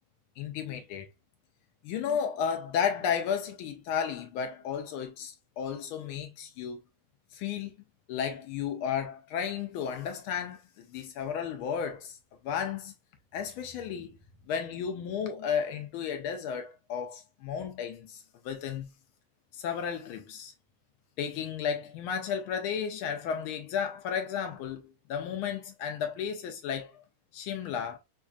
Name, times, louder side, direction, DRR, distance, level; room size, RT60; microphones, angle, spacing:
voice 1, 0.4-1.1 1.8-6.8 7.3-7.7 8.1-12.2 12.4-12.9 13.3-14.1 14.5-18.9 19.5-20.5 21.2-27.0 27.3-28.0, left 7 dB, 85° left, 1.4 m, -33 dB
5.3 x 2.4 x 2.3 m
omnidirectional pair, 2.3 m